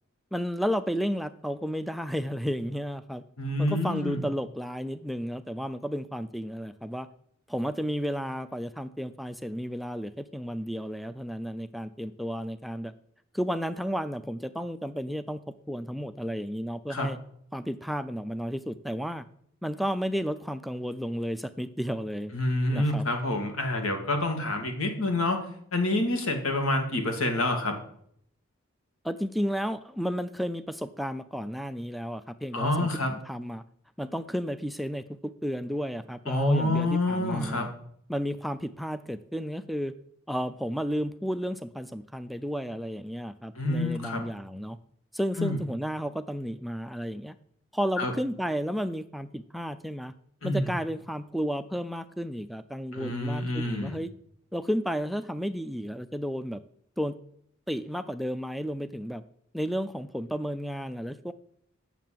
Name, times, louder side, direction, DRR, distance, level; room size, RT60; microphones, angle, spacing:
voice 1, 0.3-3.2 3.6-7.1 7.5-12.9 13.3-17.2 17.5-19.2 19.6-22.3 22.7-23.1 29.0-33.6 34.0-37.7 38.1-39.9 40.3-44.8 45.1-47.4 47.7-50.1 50.4-54.1 54.5-56.6 57.0-57.2 57.7-59.2 59.5-61.3, equal, ahead, 13 dB, 0.3 m, -32 dB
voice 2, 3.4-4.3 16.9-17.1 22.3-25.4 25.7-27.8 32.5-33.1 36.3-37.7 43.6-44.2 45.4-45.6 48.0-48.1 50.4-50.7 52.9-54.0, left 1 dB, 85° left, 5 dB, 2.1 m, -27 dB
9.3 x 6.8 x 7.5 m, 0.67 s
head